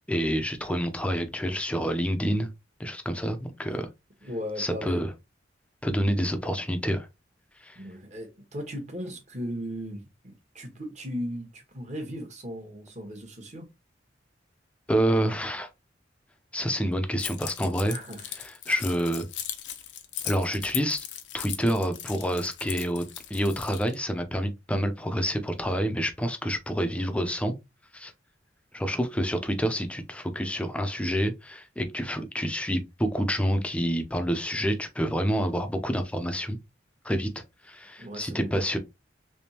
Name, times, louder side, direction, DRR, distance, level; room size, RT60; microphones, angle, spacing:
voice 1, 0.0-2.5 2.8-3.9 4.6-5.1 5.8-7.1 7.6-7.8 14.9-15.7 16.5-18.0 18.4-19.2 20.2-21.1 21.3-27.5 27.9-28.1 28.7-36.6 37.0-38.8, equal, 5° left, 0.5 m, -28 dB
voice 2, 4.2-5.0 7.7-13.7 17.8-18.2 38.0-38.5, equal, 40° right, 1.2 m, -37 dB
Keys jangling, 17.2-23.9, left 11 dB, 75° left, 0.6 m, -38 dB
3.5 x 3.3 x 2.8 m
head